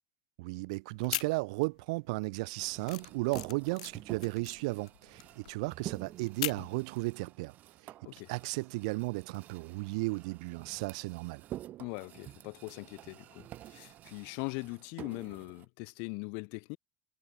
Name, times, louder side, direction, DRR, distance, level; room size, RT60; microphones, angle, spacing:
voice 1, 0.4-7.5 7.8-11.4, right 26 dB, 75° right, 0.9 m, -35 dB
sound 1, 0.9-1.9 2.2-6.8, left 15 dB, 85° left, 1.2 m, -40 dB
sound 2, 2.6-15.7, right 14 dB, 50° right, 5.3 m, -49 dB
voice 2, 11.8-16.8, left 40 dB or more, 70° left, 0.6 m, -41 dB
hypercardioid pair, 90°, 4 cm